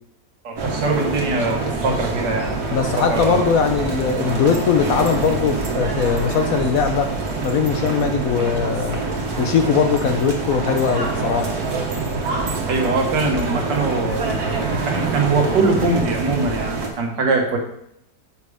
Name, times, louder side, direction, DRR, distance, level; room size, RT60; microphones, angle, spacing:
voice 1, 0.4-3.5 12.7-17.6, right 3 dB, 75° right, 2 dB, 2.0 m, -22 dB
sound 1, 0.6-16.9, right 3 dB, 60° right, 1.8 m, -25 dB
voice 2, 2.7-7.1 7.4-9.0 9.4-11.5, left 6 dB, 65° left, 6 dB, 0.9 m, -20 dB
7.2 x 5.9 x 4.9 m, 0.73 s
omnidirectional pair, 1.9 m